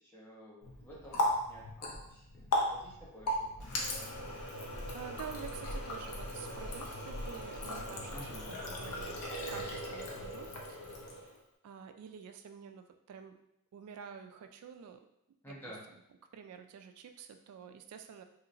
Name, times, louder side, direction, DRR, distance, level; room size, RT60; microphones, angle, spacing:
voice 1, 0.0-3.7 8.1-8.6 15.4-15.8, equal, 10° left, -6 dB, 0.8 m, -52 dB
Water tap faucet, 0.6-11.4, left 1 dB, 85° left, 0.6 m, -37 dB
voice 2, 4.9-9.2 9.5-11.3 11.6-13.4 13.7-15.0 15.5-15.8 16.3-18.2, right 7 dB, 80° right, 11 dB, 0.3 m, -49 dB
3.1 x 2.8 x 2.5 m, 0.81 s
head